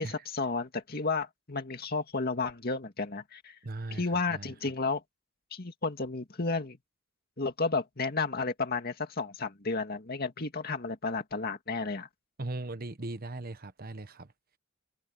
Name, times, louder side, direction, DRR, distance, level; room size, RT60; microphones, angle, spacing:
voice 1, 0.0-3.6 3.9-5.0 5.5-6.8 7.4-12.1, left 3 dB, 50° left, 2.2 m, -32 dB
voice 2, 3.6-4.5 12.4-14.3, right 2 dB, 45° right, 1.2 m, -39 dB
open air
head